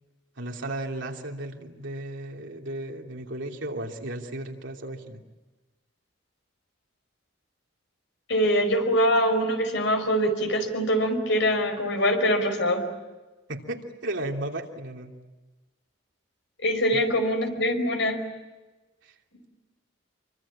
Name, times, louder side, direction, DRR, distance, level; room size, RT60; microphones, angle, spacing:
voice 1, 0.4-5.2 13.5-15.1 16.9-17.0 19.0-19.1, right 1 dB, 70° right, 1 dB, 3.0 m, -34 dB
voice 2, 8.3-12.8 16.6-18.2, equal, 65° left, 6 dB, 5.2 m, -23 dB
26.5 x 24.5 x 8.7 m, 1.2 s
head